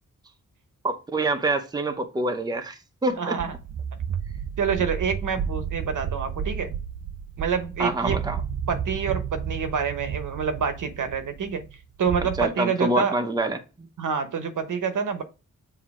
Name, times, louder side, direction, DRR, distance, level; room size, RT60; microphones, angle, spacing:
voice 1, 0.8-3.4 7.8-8.4 12.4-13.9, right 2 dB, 10° right, 0.6 m, -26 dB
voice 2, 3.2-3.5 4.6-6.7 7.4-8.2 8.7-11.6 12.0-13.2 14.0-15.2, right 6 dB, 70° right, 1.0 m, -27 dB
sound 1, 3.4-12.5, right 8 dB, 50° right, 0.5 m, -32 dB
7.4 x 2.8 x 4.8 m
wide cardioid pair, 155°, 32 cm